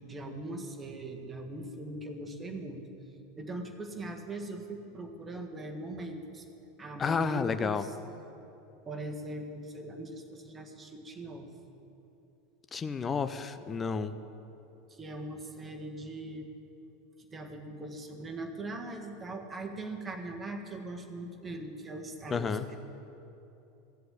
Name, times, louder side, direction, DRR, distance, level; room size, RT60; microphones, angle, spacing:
voice 1, 0.0-2.8 3.4-6.4 6.8-7.9 8.8-11.5 14.9-16.5 17.3-22.8, right 2 dB, 20° right, 3 dB, 1.6 m, -40 dB
voice 2, 7.0-7.9 12.7-14.1 22.3-22.7, left 5 dB, 20° left, 11 dB, 0.6 m, -31 dB
15.0 x 7.8 x 8.5 m, 2.9 s
figure-of-eight pair, 80°, 0 cm